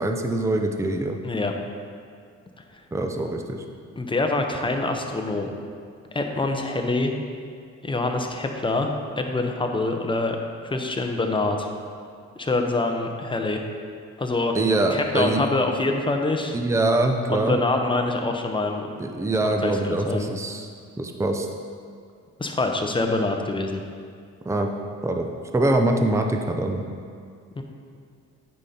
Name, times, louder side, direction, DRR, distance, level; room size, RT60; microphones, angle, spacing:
voice 1, 0.0-1.2 2.9-3.6 14.5-15.4 16.5-17.6 19.0-20.7 21.0-21.5 24.5-24.7 25.0-25.3 25.5-26.8, right 2 dB, 10° right, 4 dB, 0.6 m, -23 dB
voice 2, 4.0-5.5 6.1-7.2 7.8-10.4 10.6-11.7 12.4-13.6 14.2-14.5 14.9-16.6 17.3-18.9 19.6-20.3 22.4-23.8 27.6-27.7, left 2 dB, 15° left, 3 dB, 0.9 m, -25 dB
8.7 x 5.6 x 4.3 m, 2.2 s
cardioid pair, 90°, 30 cm